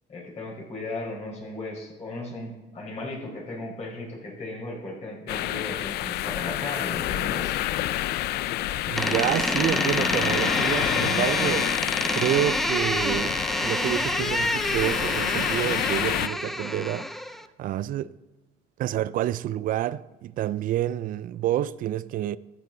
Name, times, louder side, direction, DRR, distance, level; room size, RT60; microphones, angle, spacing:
voice 1, 0.1-7.6, left 2 dB, 40° left, 4.8 m, -36 dB
sound 1, 5.3-16.3, left 14 dB, 75° left, 0.4 m, -28 dB
voice 2, 8.8-11.7 12.1-18.2 18.8-22.4, right 12 dB, 55° right, 0.4 m, -28 dB
Door, 9.0-17.5, equal, ahead, 0.5 m, -28 dB
14.0 x 9.8 x 3.9 m
cardioid pair, 110°, 17 cm